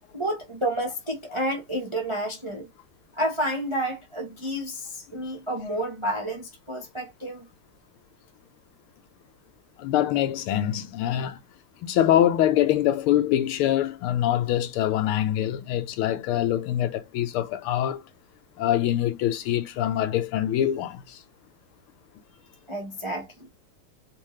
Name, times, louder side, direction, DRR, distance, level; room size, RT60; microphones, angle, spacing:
voice 1, 0.1-2.7 3.1-7.5 22.7-23.5, right 1 dB, 35° right, 0.4 m, -30 dB
voice 2, 9.8-11.4 11.8-18.0 18.6-21.2, left 12 dB, 85° left, 1.6 m, -24 dB
4.4 x 2.4 x 3.1 m
omnidirectional pair, 2.3 m